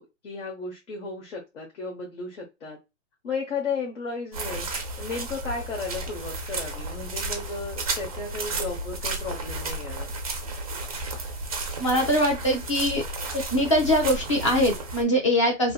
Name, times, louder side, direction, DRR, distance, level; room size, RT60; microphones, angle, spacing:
voice 1, 0.0-2.8 3.2-4.7 5.0-10.1, left 4 dB, 65° left, 1.1 m, -34 dB
sound 1, 4.3-15.0, right 2 dB, 30° right, 0.4 m, -33 dB
voice 2, 11.8-13.0 13.3-15.7, equal, 25° left, 0.5 m, -22 dB
2.8 x 2.7 x 2.3 m
hypercardioid pair, 170°, 38 cm